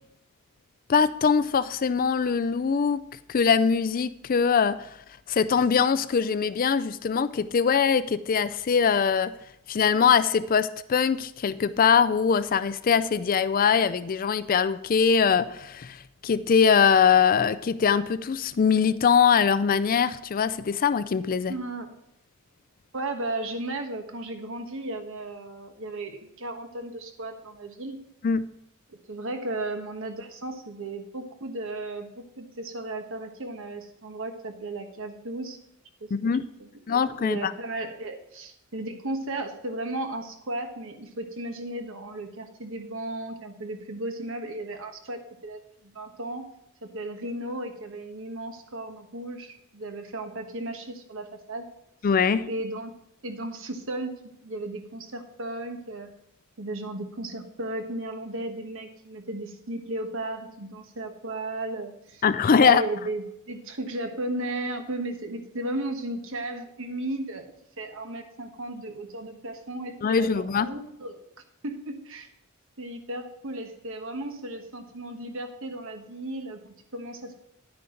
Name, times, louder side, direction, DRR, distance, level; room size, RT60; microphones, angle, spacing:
voice 1, 0.9-3.0 3.3-4.9 5.3-9.3 9.7-21.5 28.2-28.4 36.1-36.4 36.9-37.5 52.0-52.5 62.2-62.8 70.0-70.7, left 6 dB, 40° left, 13 dB, 0.4 m, -22 dB
voice 2, 21.5-21.9 22.9-28.0 28.9-32.1 32.4-35.6 36.0-36.1 36.4-46.4 46.8-51.7 52.4-52.9 53.2-56.1 56.6-62.2 62.6-71.2 71.6-72.3 72.8-77.3, right 2 dB, 65° right, 6 dB, 1.3 m, -35 dB
10.5 x 9.5 x 3.9 m, 0.77 s
head